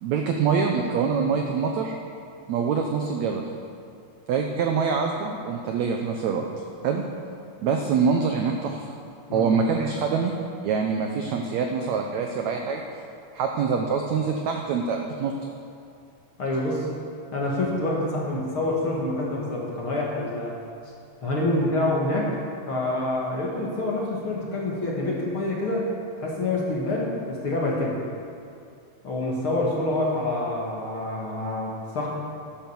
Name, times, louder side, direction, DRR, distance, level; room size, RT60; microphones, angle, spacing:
voice 1, 0.0-1.9 2.5-3.4 4.3-6.4 6.8-7.0 7.6-8.9 9.3-10.3 10.6-12.8 13.3-15.3, right 5 dB, 80° right, 3 dB, 1.6 m, -25 dB
voice 2, 9.3-9.6 16.4-16.9 17.3-20.6 21.2-22.3 22.7-25.9 26.2-28.0 29.0-32.1, left 2 dB, 45° left, -4 dB, 2.1 m, -27 dB
11.5 x 10.5 x 7.1 m, 2.5 s
omnidirectional pair, 4.2 m